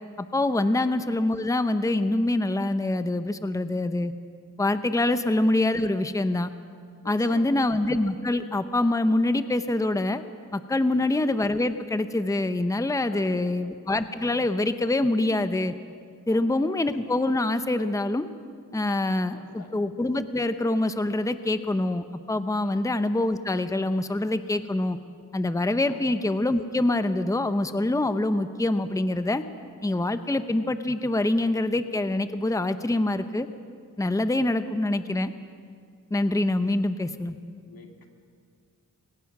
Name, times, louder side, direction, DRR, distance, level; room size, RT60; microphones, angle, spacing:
voice 1, 0.2-4.1 4.6-6.5 7.0-10.2 10.5-15.7 16.3-18.3 18.7-25.0 25.3-29.4 29.8-33.5 34.0-35.3 36.1-37.4, left 2 dB, 10° left, 10 dB, 0.8 m, -25 dB
voice 2, 7.0-7.6 10.8-11.1 13.1-13.6 16.3-16.6 19.3-19.7 22.6-22.8 25.9-26.0 36.6-36.8 37.7-38.1, left 4 dB, 90° left, 2 dB, 2.4 m, -46 dB
25.5 x 17.5 x 6.0 m, 2.1 s
wide cardioid pair, 85°, 34 cm